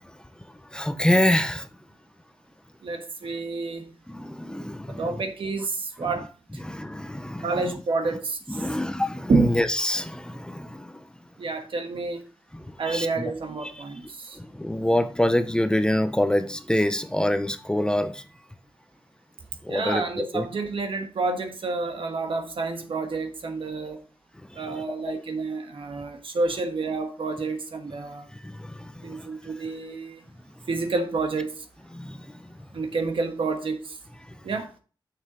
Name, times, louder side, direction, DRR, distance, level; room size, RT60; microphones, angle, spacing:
voice 1, 0.7-1.7 4.1-5.2 6.6-7.7 8.5-11.0 12.5-13.3 14.5-18.2 19.6-20.5 24.6-25.1 28.4-29.3 31.9-32.2, left 1 dB, 10° left, 0.6 m, -26 dB
voice 2, 2.8-3.9 4.9-6.3 7.4-8.7 9.3-9.6 11.4-12.2 12.8-14.4 19.7-24.0 24.5-28.2 29.0-30.2 30.7-31.5 32.7-34.0 34.4-34.7, right 3 dB, 85° right, 1.3 m, -29 dB
6.6 x 6.3 x 3.7 m
wide cardioid pair, 125°, 9 cm